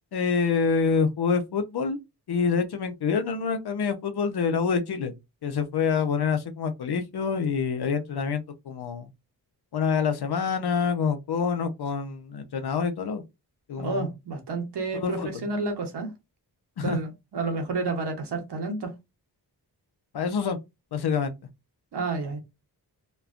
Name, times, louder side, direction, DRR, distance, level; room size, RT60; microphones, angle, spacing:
voice 1, 0.1-2.0 2.3-5.1 5.4-9.1 9.7-13.2 13.7-14.1 15.0-15.4 16.8-17.0 20.1-20.6 20.9-21.3, left 5 dB, 70° left, 0.7 m, -26 dB
voice 2, 13.8-16.1 16.8-18.9 21.9-22.4, right 3 dB, 75° right, 1.0 m, -30 dB
3.1 x 2.1 x 2.4 m
cardioid pair, 60°, 41 cm